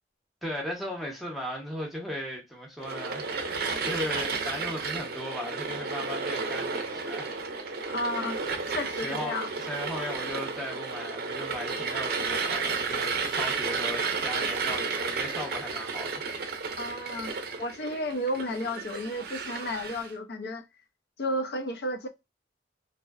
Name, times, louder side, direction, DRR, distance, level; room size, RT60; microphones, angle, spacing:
voice 1, 0.4-7.3 7.6-7.9 9.0-9.4 9.7-16.2, left 1 dB, ahead, 0.7 m, -37 dB
sound 1, 2.8-20.1, right 4 dB, 60° right, 0.5 m, -32 dB
voice 2, 7.9-8.4 8.7-9.5 16.8-17.3 17.6-20.6 21.2-22.1, left 1 dB, 60° left, 0.5 m, -32 dB
2.6 x 2.1 x 2.2 m
head